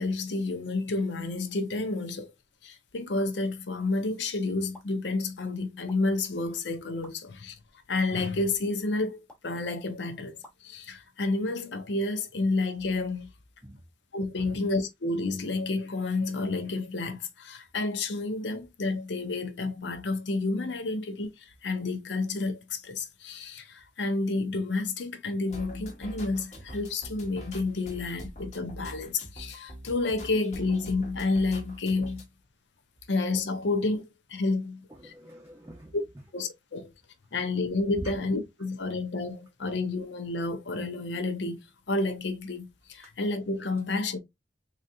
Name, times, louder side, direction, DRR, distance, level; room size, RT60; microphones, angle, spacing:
voice 1, 0.0-2.3 2.6-7.6 7.9-13.3 14.1-32.3 33.1-34.9 35.9-36.0 36.3-36.9 37.3-41.6 41.9-44.2, left 3 dB, 80° left, 0.8 m, -30 dB
sound 1, 4.7-4.9 5.9-6.0 7.0-7.1 8.1-8.2 9.3-9.5 10.4-10.6, left 1 dB, 5° left, 1.0 m, -50 dB
sound 2, 25.5-32.2, equal, 40° left, 1.0 m, -43 dB
voice 2, 34.9-36.2 37.2-37.3 38.0-38.2 43.0-43.1, right 1 dB, 15° right, 0.6 m, -44 dB
3.9 x 2.8 x 2.4 m
head